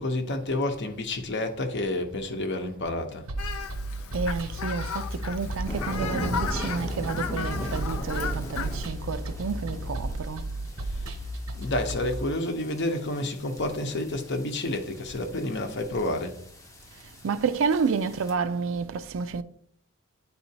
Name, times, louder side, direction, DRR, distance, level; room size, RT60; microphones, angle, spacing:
voice 1, 0.0-3.3 10.9-11.1 11.5-16.4, left 1 dB, 55° left, 0.9 m, -29 dB
sound 1, 3.3-12.2, right 1 dB, 80° right, 0.8 m, -34 dB
Fowl, 3.4-8.9, left 6 dB, 75° left, 0.5 m, -35 dB
voice 2, 4.1-10.5 17.2-19.4, right 5 dB, 65° right, 0.4 m, -30 dB
sound 2, 5.7-18.3, equal, 15° left, 0.7 m, -39 dB
9.5 x 4.3 x 2.8 m
head